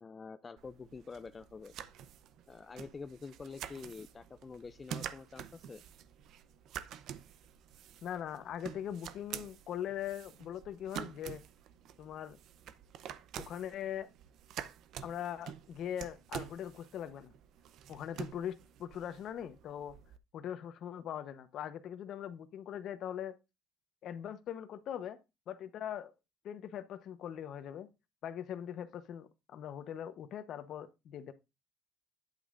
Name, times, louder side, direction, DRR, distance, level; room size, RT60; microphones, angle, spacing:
voice 1, 0.0-1.7 2.5-5.8, left 5 dB, 20° left, 0.3 m, -47 dB
sound 1, 0.6-20.2, right 9 dB, 55° right, 0.7 m, -48 dB
voice 2, 8.0-11.4 12.0-12.4 13.4-14.1 15.0-17.3 17.9-20.0 20.3-23.4 24.0-25.2 25.5-26.1 26.4-27.9 28.2-31.3, left 10 dB, 50° left, 0.9 m, -41 dB
9.3 x 8.4 x 2.5 m
cardioid pair, 135°, 0 cm